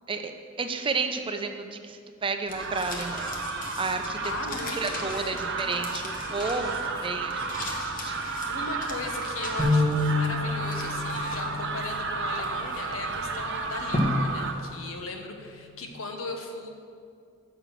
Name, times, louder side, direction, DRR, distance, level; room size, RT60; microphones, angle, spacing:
voice 1, 0.6-3.4 3.8-8.2, right 4 dB, 25° right, 6 dB, 0.5 m, -32 dB
sound 1, 2.5-15.0, left 1 dB, 45° left, 1.1 m, -37 dB
sound 2, 2.5-14.5, right 4 dB, 60° right, 0.7 m, -33 dB
voice 2, 4.2-5.5 8.5-16.7, left 2 dB, 85° left, 3 dB, 1.1 m, -37 dB
sound 3, 9.6-15.8, left 2 dB, 5° left, 1.4 m, -31 dB
6.7 x 6.0 x 7.3 m, 2.3 s
head